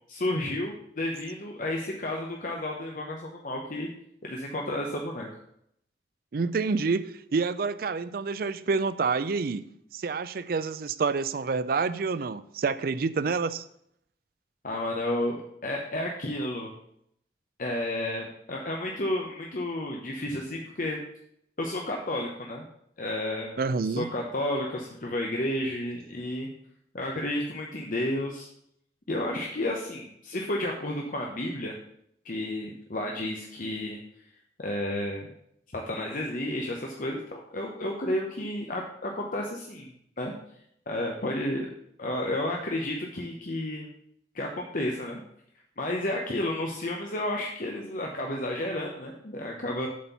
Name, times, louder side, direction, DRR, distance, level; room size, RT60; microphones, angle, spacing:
voice 1, 0.1-3.9 4.2-5.4 14.6-15.4 15.6-16.7 17.6-21.0 21.6-22.6 23.0-23.6 23.9-26.5 26.9-28.5 29.1-31.7 32.2-34.0 34.6-35.3 35.7-40.3 40.9-41.7 42.0-43.9 44.3-45.2 45.8-49.9, left 1 dB, 50° left, 0 dB, 0.9 m, -31 dB
voice 2, 6.3-13.6 23.6-24.1, right 4 dB, 55° right, 14 dB, 0.4 m, -28 dB
7.4 x 4.4 x 6.8 m, 0.72 s
head